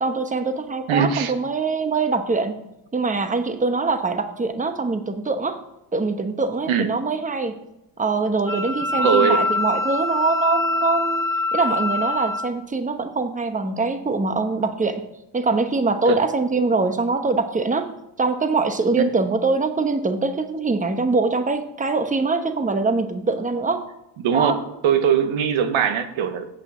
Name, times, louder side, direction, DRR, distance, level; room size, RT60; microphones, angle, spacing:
voice 1, 0.0-2.6 2.9-5.6 5.9-7.6 8.0-11.2 11.5-15.0 15.3-17.9 18.2-23.9 24.3-24.5, right 3 dB, 15° right, 8 dB, 1.0 m, -23 dB
voice 2, 0.9-1.3 6.7-6.9 9.0-9.4 16.1-16.2 19.0-19.1 24.2-26.5, right 7 dB, 85° right, 10 dB, 1.1 m, -21 dB
Wind instrument woodwind instrument, 8.5-12.5, left 2 dB, 10° left, 0.3 m, -24 dB
8.2 x 6.2 x 7.3 m, 0.89 s
cardioid pair, 105°, 47 cm